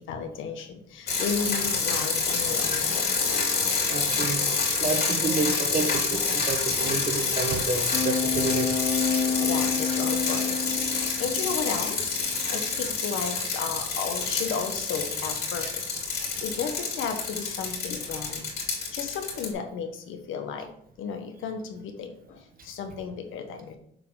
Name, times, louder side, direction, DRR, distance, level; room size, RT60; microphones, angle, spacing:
voice 1, 0.0-3.5 9.4-10.6 10.9-18.5 18.9-20.7 21.0-23.8, left 6 dB, 85° left, 5 dB, 1.1 m, -34 dB
sound 1, 1.1-19.5, left 4 dB, 55° left, 2.7 m, -28 dB
voice 2, 3.9-4.4 4.8-8.7, right 4 dB, 45° right, 7 dB, 1.1 m, -29 dB
sound 2, 7.9-11.7 12.2-12.5, left 5 dB, 40° left, 1.0 m, -29 dB
6.8 x 3.9 x 4.8 m, 0.67 s
cardioid pair, 90°, 20 cm